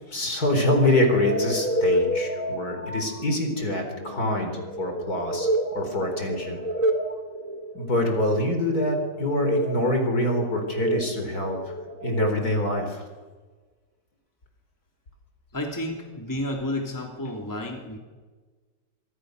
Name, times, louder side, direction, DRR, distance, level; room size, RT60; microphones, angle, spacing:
voice 1, 0.1-5.5 5.7-6.6 7.7-13.1, left 1 dB, 45° left, 5 dB, 4.7 m, -25 dB
sound 1, 0.6-12.8, right 1 dB, 20° right, 2.4 m, -30 dB
voice 2, 15.5-18.0, left 1 dB, 10° left, 2 dB, 3.0 m, -31 dB
26.0 x 24.5 x 6.6 m, 1.4 s
omnidirectional pair, 2.2 m